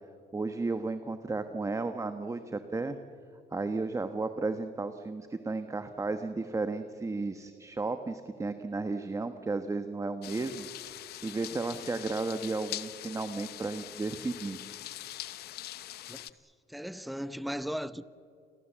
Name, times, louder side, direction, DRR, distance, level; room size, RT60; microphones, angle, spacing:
voice 1, 0.3-3.0 3.5-10.7 11.2-14.6, right 3 dB, 20° right, 1.3 m, -33 dB
sound 1, 10.2-16.3, left 14 dB, 70° left, 0.9 m, -43 dB
voice 2, 16.7-18.0, equal, ahead, 0.8 m, -36 dB
29.5 x 22.5 x 7.5 m
cardioid pair, 110°, 17 cm